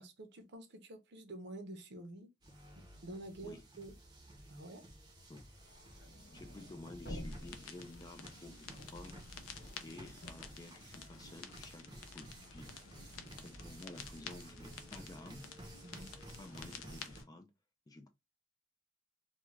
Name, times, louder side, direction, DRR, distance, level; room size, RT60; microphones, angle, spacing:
voice 1, 0.0-2.3 2.8-3.9 4.5-4.9 15.8-16.1, right 1 dB, 60° right, 0.6 m, -49 dB
sound 1, 2.4-17.2, right 1 dB, 20° right, 0.7 m, -54 dB
sound 2, 5.3-11.4 11.7-15.0, equal, 55° left, 0.9 m, -52 dB
voice 2, 6.3-9.2 9.8-12.7 13.4-15.5 16.1-17.5 17.9-18.1, left 2 dB, 20° left, 0.3 m, -52 dB
sound 3, 7.2-17.2, left 7 dB, 90° left, 0.5 m, -52 dB
2.3 x 2.2 x 3.1 m
head